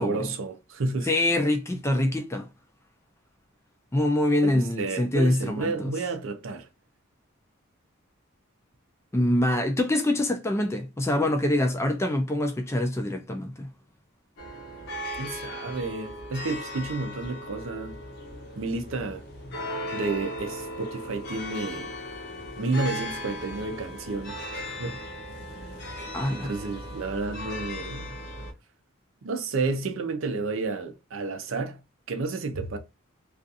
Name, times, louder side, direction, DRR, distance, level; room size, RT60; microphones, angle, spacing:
voice 1, 0.0-1.1 4.4-6.7 15.2-18.0 18.6-19.2 19.9-21.9 22.6-25.0 26.3-28.1 29.2-31.8 32.1-32.8, right 3 dB, 65° right, 0.5 m, -31 dB
voice 2, 1.1-2.5 3.9-5.9 9.1-13.7 26.1-26.5, left 1 dB, 15° left, 0.3 m, -25 dB
sound 1, 14.4-28.5, left 1 dB, 50° left, 0.6 m, -37 dB
2.4 x 2.4 x 2.6 m
head